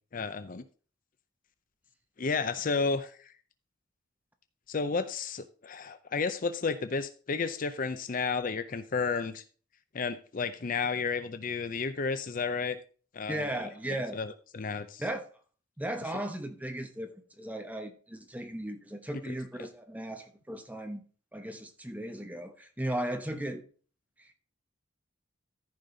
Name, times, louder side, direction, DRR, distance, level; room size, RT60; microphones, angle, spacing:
voice 1, 0.1-0.7 2.2-3.3 4.7-9.4 9.9-12.8 13.1-13.5 14.1-15.0 19.3-19.4, left 4 dB, 40° left, 11 dB, 0.5 m, -32 dB
voice 2, 13.3-14.2 15.0-15.2 15.8-21.0 21.3-23.6 24.2-24.3, right 1 dB, 10° right, 5 dB, 1.0 m, -36 dB
14.0 x 5.2 x 3.9 m, 0.40 s
head